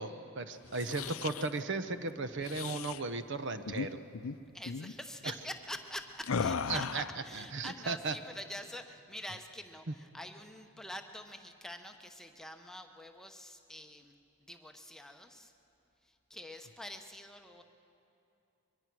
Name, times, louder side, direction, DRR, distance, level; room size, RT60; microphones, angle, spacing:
voice 1, 0.0-4.0 6.7-7.0 7.3-8.1, right 3 dB, 55° right, 10 dB, 0.8 m, -36 dB
sound 1, 0.6-1.5 2.4-3.0 3.6-4.4 4.7-4.9 6.2-7.2, left 5 dB, 65° left, 0.5 m, -36 dB
voice 2, 4.5-15.5 16.0-17.6, left 1 dB, ahead, 5 dB, 0.9 m, -46 dB
23.0 x 22.5 x 6.1 m, 2.8 s
head